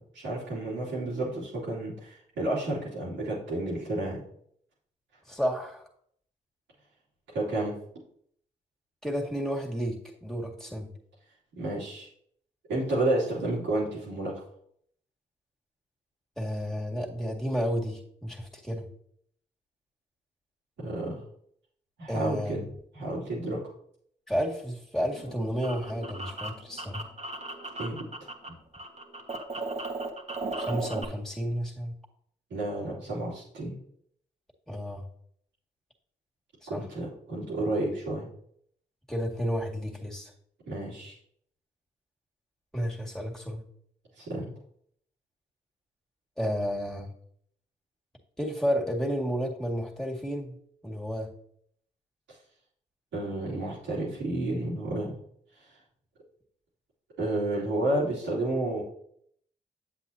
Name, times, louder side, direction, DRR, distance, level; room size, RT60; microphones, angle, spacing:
voice 1, 0.0-4.2 7.3-7.8 11.6-12.1 12.7-14.3 20.8-21.2 22.0-22.6 22.9-23.6 27.8-28.1 28.5-28.6 32.5-33.8 36.7-38.3 40.7-41.1 44.2-44.5 53.1-55.2 57.2-58.8, right 1 dB, 85° right, -7 dB, 2.8 m, -31 dB
voice 2, 5.3-5.8 9.0-10.9 16.4-18.9 22.1-22.7 24.3-27.1 30.6-31.9 34.7-35.0 36.6-36.8 39.1-40.3 42.7-43.6 46.4-47.1 48.4-50.6 50.8-51.3, equal, ahead, -2 dB, 2.1 m, -31 dB
sound 1, 25.1-28.5 28.7-31.0, right 2 dB, 35° right, 1.5 m, -36 dB
8.2 x 7.6 x 2.8 m, 0.67 s
supercardioid pair, 40°, 19 cm